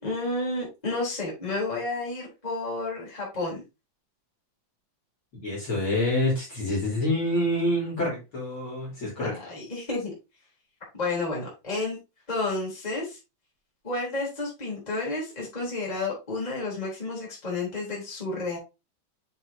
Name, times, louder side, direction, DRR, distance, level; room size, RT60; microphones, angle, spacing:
voice 1, 0.0-3.6 9.2-10.2 10.9-12.0 12.3-13.2 13.8-18.6, left 2 dB, 10° left, -4 dB, 3.5 m, -31 dB
voice 2, 5.4-9.3, left 1 dB, 35° left, -5 dB, 3.8 m, -27 dB
6.8 x 6.8 x 2.8 m, 0.26 s
omnidirectional pair, 3.9 m